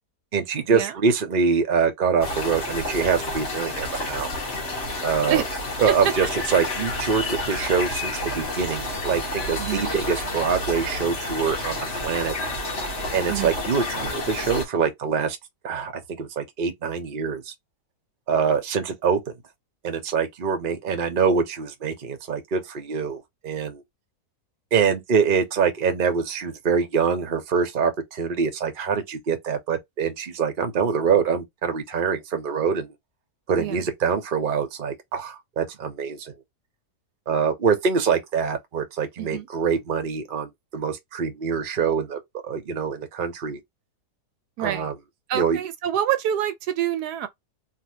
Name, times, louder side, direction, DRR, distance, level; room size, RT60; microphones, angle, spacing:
voice 1, 0.3-4.3 5.0-5.4 5.8-12.3 13.1-15.4 15.6-17.5 18.3-19.3 19.8-23.8 24.7-32.9 33.5-36.3 37.3-43.6 44.6-44.9 45.3-45.6, right 6 dB, 40° right, 0.8 m, -24 dB
forest birds, 2.2-14.7, left 2 dB, 40° left, 1.3 m, -30 dB
voice 2, 9.6-9.9 13.3-13.6 33.6-33.8 39.2-39.5 44.6-44.9 45.3-47.3, right 11 dB, 80° right, 1.2 m, -27 dB
3.3 x 2.4 x 2.7 m
omnidirectional pair, 1.7 m